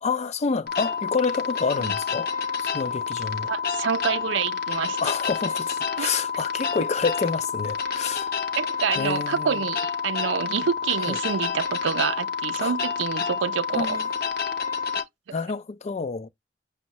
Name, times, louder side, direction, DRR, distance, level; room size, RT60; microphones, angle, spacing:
voice 1, 0.0-2.3 2.6-3.5 5.0-8.3 9.0-9.6 11.1-11.2 12.6-12.7 13.7-14.0 15.3-16.3, left 5 dB, 35° left, 0.4 m, -28 dB
sound 1, 0.7-15.0, left 6 dB, 55° left, 0.9 m, -29 dB
voice 2, 3.5-5.0 6.0-6.2 8.6-14.0 15.0-15.1, right 7 dB, 90° right, 0.4 m, -27 dB
6.2 x 2.1 x 2.8 m
head